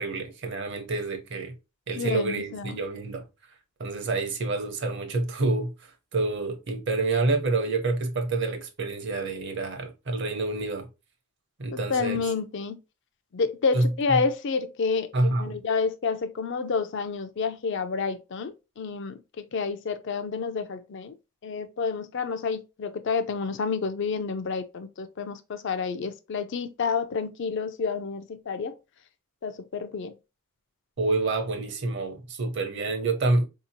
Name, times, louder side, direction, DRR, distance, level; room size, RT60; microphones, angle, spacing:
voice 1, 0.0-1.6 1.9-3.2 3.8-10.9 11.6-12.2 13.7-14.2 15.1-15.6 31.0-33.4, right 2 dB, 55° right, 0.8 m, -28 dB
voice 2, 1.9-2.8 11.9-12.8 13.3-21.2 21.4-28.8 29.4-30.1, left 5 dB, 55° left, 0.4 m, -29 dB
4.3 x 2.8 x 2.7 m
head